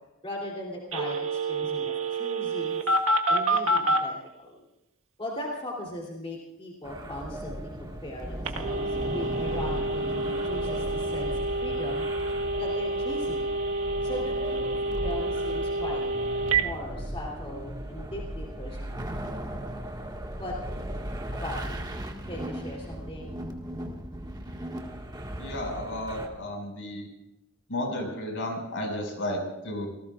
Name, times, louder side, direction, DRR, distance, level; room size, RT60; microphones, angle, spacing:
voice 1, 0.2-2.8 3.3-4.6 5.2-12.1 12.6-13.6 14.0-19.1 20.4-20.6 21.3-21.8 22.3-23.4, left 1 dB, 25° left, -3 dB, 3.2 m, -38 dB
Telephone, 0.9-4.0 8.4-16.6, right 2 dB, 70° right, 1.6 m, -28 dB
sound 1, 6.8-26.3, right 1 dB, 20° right, 1.8 m, -37 dB
voice 2, 25.4-27.1 27.7-29.9, left 1 dB, 60° left, 2 dB, 5.7 m, -33 dB
28.5 x 19.0 x 2.5 m, 0.93 s
head